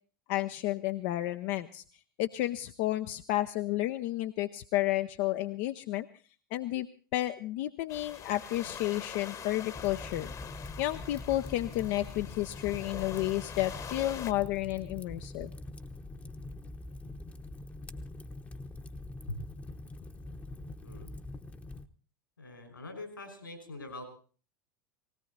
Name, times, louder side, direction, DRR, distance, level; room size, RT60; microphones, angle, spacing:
voice 1, 0.3-1.8 2.2-6.1 6.5-6.9 7.1-10.3 10.8-15.5, left 15 dB, 50° left, 9 dB, 0.7 m, -31 dB
sound 1, 7.9-14.3, left 7 dB, 30° left, 1.2 m, -44 dB
Fire, 9.7-21.9, left 2 dB, 10° left, 1.0 m, -44 dB
voice 2, 22.4-24.0, left 2 dB, 85° left, 6 dB, 5.4 m, -43 dB
19.0 x 18.0 x 4.1 m, 0.39 s
figure-of-eight pair, 80°, 11 cm